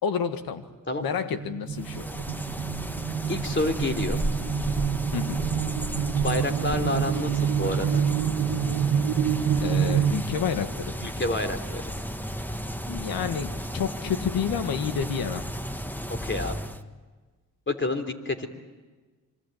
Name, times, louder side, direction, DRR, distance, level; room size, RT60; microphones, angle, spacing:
voice 1, 0.0-0.6 1.0-2.1 5.1-5.4 9.6-11.1 12.9-15.4, left 7 dB, 90° left, 9 dB, 1.8 m, -29 dB
sound 1, 1.3-10.1, right 8 dB, 85° right, 1.7 m, -27 dB
sound 2, 1.7-16.8, equal, 5° left, 1.6 m, -34 dB
voice 2, 3.3-4.5 6.2-8.0 11.0-11.9 16.2-16.6 17.7-18.5, left 2 dB, 35° left, 6 dB, 3.7 m, -29 dB
26.0 x 24.5 x 9.3 m, 1.3 s
cardioid pair, 65°, 34 cm